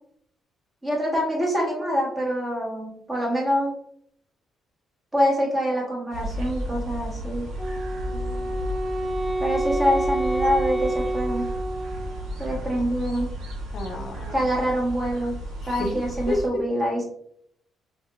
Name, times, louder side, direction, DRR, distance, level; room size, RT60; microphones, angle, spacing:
voice 1, 0.8-3.7 5.1-7.5 9.4-11.5 12.4-13.3 14.3-15.3 15.7-17.0, equal, 20° right, -2 dB, 1.3 m, -25 dB
sound 1, 6.1-16.5, equal, 75° right, 1.1 m, -33 dB
Wind instrument woodwind instrument, 7.6-12.4, right 1 dB, 5° left, 0.5 m, -28 dB
voice 2, 8.1-8.7 13.7-14.4 15.6-16.8, left 2 dB, 60° left, 3 dB, 0.6 m, -32 dB
4.0 x 2.9 x 2.4 m, 0.67 s
cardioid pair, 125°, 0 cm